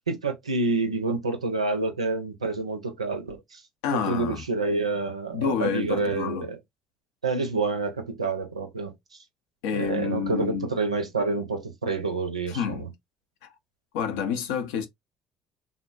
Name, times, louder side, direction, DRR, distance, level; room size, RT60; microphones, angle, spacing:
voice 1, 0.1-3.6 3.9-6.6 7.2-8.9 9.7-12.9, right 3 dB, 85° right, 0.5 m, -28 dB
voice 2, 3.8-4.4 5.3-6.5 9.6-10.7 12.5-12.9 13.9-14.9, left 7 dB, 70° left, 0.5 m, -28 dB
3.5 x 2.1 x 2.3 m
figure-of-eight pair, 50°, 3 cm